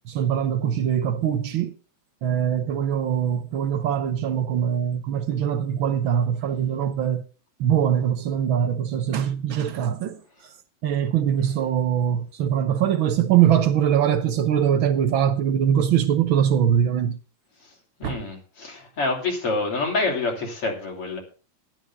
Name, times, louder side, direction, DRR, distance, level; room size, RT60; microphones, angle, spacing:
voice 1, 0.1-1.7 2.2-7.2 7.6-10.2 10.8-17.2 18.0-18.2, right 9 dB, 80° right, 1.1 m, -22 dB
voice 2, 18.0-21.2, left 3 dB, 50° left, 4.1 m, -27 dB
14.0 x 11.5 x 3.5 m
omnidirectional pair, 3.4 m